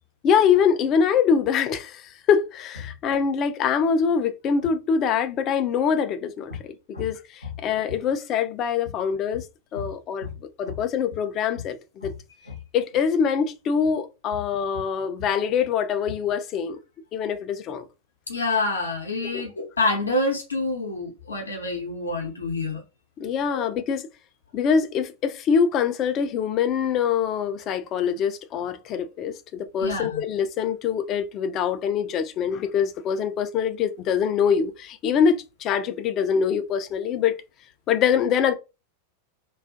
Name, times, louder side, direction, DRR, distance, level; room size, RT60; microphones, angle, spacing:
voice 1, 0.2-9.5 9.7-10.3 10.6-12.1 12.7-16.8 17.1-17.8 19.3-19.4 23.2-24.1 24.5-37.4 37.9-38.5, left 7 dB, 35° left, 0.3 m, -24 dB
voice 2, 18.3-22.8 23.5-23.6 29.8-30.2, left 2 dB, 75° left, 0.6 m, -27 dB
2.4 x 2.3 x 2.5 m
figure-of-eight pair, 90°, 0 cm